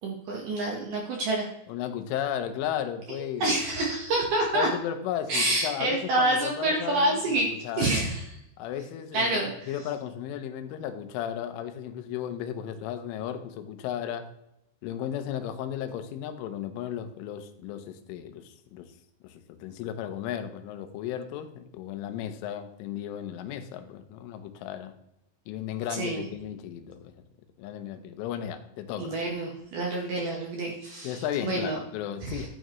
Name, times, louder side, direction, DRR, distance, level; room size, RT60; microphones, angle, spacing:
voice 1, 0.0-1.5 3.4-4.7 5.3-7.5 7.8-8.2 9.1-9.5 25.9-26.2 29.0-31.8 32.2-32.5, right 2 dB, 65° right, 0 dB, 2.2 m, -27 dB
voice 2, 1.7-3.6 4.5-8.1 8.6-14.3 14.8-18.9 19.2-24.9 25.5-27.1 27.6-29.1 31.0-32.5, left 10 dB, 85° left, 9 dB, 3.4 m, -35 dB
12.0 x 9.0 x 3.1 m, 0.81 s
omnidirectional pair, 5.5 m